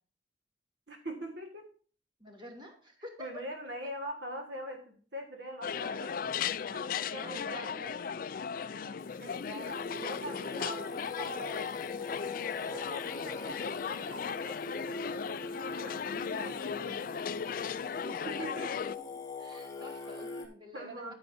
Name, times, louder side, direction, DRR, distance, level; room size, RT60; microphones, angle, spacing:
voice 1, 0.9-1.7 3.2-6.1 6.7-7.9 8.6-11.8 12.4-17.0 18.3-18.7 20.7-21.1, right 1 dB, 65° right, 4 dB, 1.7 m, -43 dB
voice 2, 2.2-3.3 6.9-8.0 17.9-18.3 18.7-21.1, equal, 25° right, 1 dB, 2.7 m, -49 dB
sound 1, 5.6-19.0, left 7 dB, 50° left, 0.3 m, -37 dB
Singing, 9.0-20.5, left 3 dB, 20° left, 2.0 m, -42 dB
10.0 x 9.5 x 2.7 m, 0.42 s
head